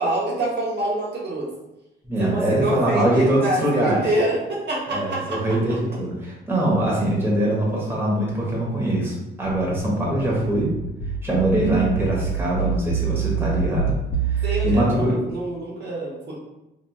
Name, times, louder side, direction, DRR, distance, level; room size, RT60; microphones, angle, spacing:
voice 1, 0.0-1.5 2.2-5.6 14.4-15.0 15.3-16.3, right 1 dB, 60° right, -4 dB, 0.8 m, -26 dB
voice 2, 2.0-4.1 4.9-10.8 11.2-14.0 14.2-15.2, right 1 dB, 10° right, -5 dB, 1.0 m, -23 dB
sound 1, 9.8-14.8, right 7 dB, 80° left, 1.3 m, -26 dB
2.9 x 2.6 x 2.2 m, 0.94 s
cardioid pair, 90°, 20 cm